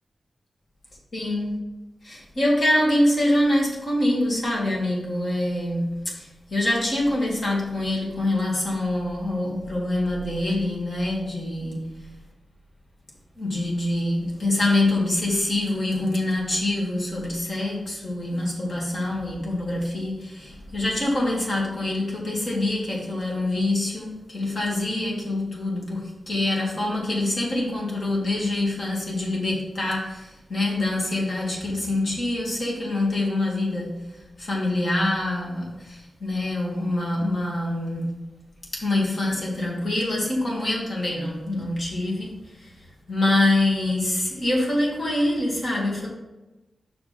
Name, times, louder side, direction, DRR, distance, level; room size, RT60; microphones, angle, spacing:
voice 1, 1.1-1.6 2.0-11.9 13.4-38.2 38.7-42.7 43.1-46.1, left 1 dB, 55° left, -3 dB, 2.3 m, -25 dB
6.0 x 4.9 x 5.2 m, 1.0 s
wide cardioid pair, 115°, 0 cm